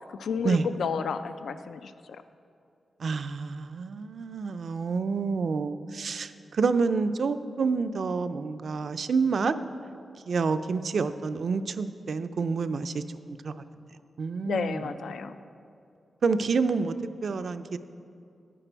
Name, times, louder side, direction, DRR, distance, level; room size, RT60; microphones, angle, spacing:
voice 1, 0.1-2.2 14.4-15.3, left 6 dB, 85° left, 11 dB, 0.3 m, -32 dB
voice 2, 3.0-9.6 10.3-13.0 13.4-13.5 14.2-14.9 16.2-17.8, right 4 dB, 60° right, 11 dB, 0.4 m, -28 dB
11.0 x 10.0 x 4.5 m, 2.5 s
wide cardioid pair, 120°, 0 cm